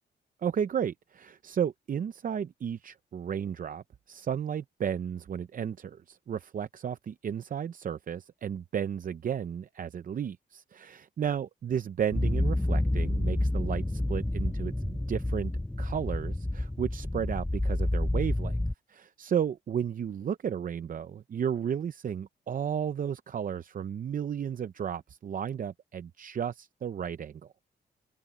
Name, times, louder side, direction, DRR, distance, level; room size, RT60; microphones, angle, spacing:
voice 1, 0.4-15.5 15.8-18.6 18.9-27.5, right 8 dB, 50° right, 0.6 m, -33 dB
sound 1, 12.1-18.7, left 1 dB, 5° left, 0.3 m, -29 dB
cardioid pair, 115°, 18 cm